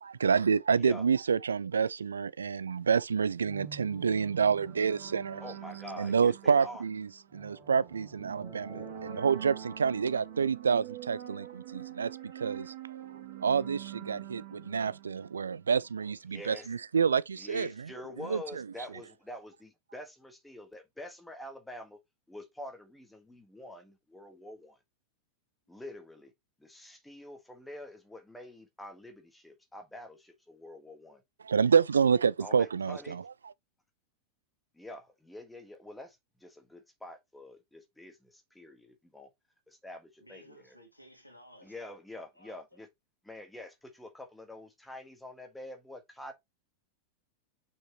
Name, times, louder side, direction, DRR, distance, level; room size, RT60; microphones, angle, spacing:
voice 1, 0.0-5.4 6.0-12.7 13.4-17.9 18.2-18.6 31.4-33.2, right 6 dB, 70° right, 0.3 m, -28 dB
sound 1, 3.4-15.9, right 9 dB, 50° right, 2.2 m, -45 dB
voice 2, 5.4-6.8 16.3-16.7 17.4-22.0 22.3-24.8 25.7-26.3 26.6-31.2 32.4-33.2 34.7-39.3 39.7-40.7 41.6-42.9 43.2-46.3, left 1 dB, 5° left, 1.6 m, -46 dB
voice 3, 40.2-42.0 42.3-42.8, equal, 85° left, 2.3 m, -56 dB
6.3 x 5.3 x 3.0 m
figure-of-eight pair, 90°, 0 cm